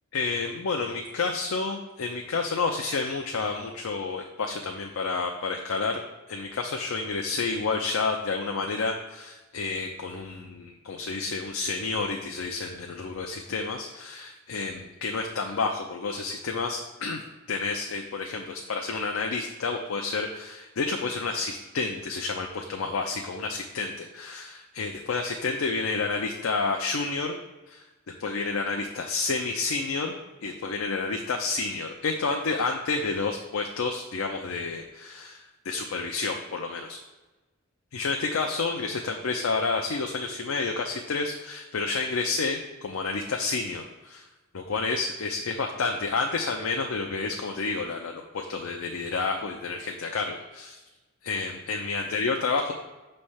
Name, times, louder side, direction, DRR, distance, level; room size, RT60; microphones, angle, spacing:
voice 1, 0.1-6.0 6.3-17.2 17.5-27.4 27.7-27.8 28.2-30.1 30.4-37.0 37.9-44.3 44.5-50.8 51.2-52.7, left 4 dB, 80° left, 2 dB, 0.5 m, -30 dB
6.2 x 3.3 x 5.6 m, 1.1 s
head